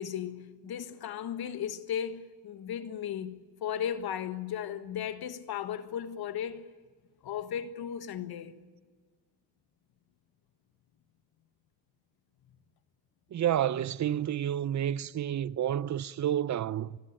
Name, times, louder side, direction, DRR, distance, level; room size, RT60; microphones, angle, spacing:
voice 1, 0.0-6.7 7.2-8.6, left 9 dB, 60° left, 1.5 m, -36 dB
voice 2, 13.3-17.0, right 11 dB, 40° right, 0.6 m, -30 dB
24.0 x 16.0 x 8.9 m
cardioid pair, 105°, 42 cm